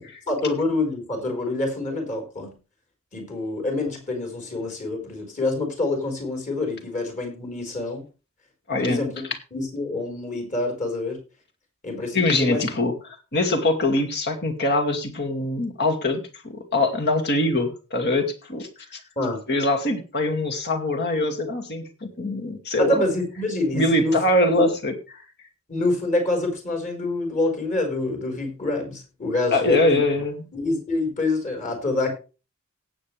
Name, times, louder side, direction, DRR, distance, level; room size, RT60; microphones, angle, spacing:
voice 1, 0.3-2.6 3.1-8.0 8.8-9.2 9.5-11.2 11.8-12.6 19.2-19.4 22.8-24.2 24.5-24.7 25.7-30.0 30.5-32.1, left 2 dB, 35° left, 3 dB, 4.9 m, -26 dB
voice 2, 8.7-9.0 12.1-18.7 19.5-23.0 23.7-24.9 29.5-30.4, left 2 dB, 50° left, 3 dB, 2.4 m, -23 dB
18.0 x 7.8 x 3.4 m, 0.32 s
head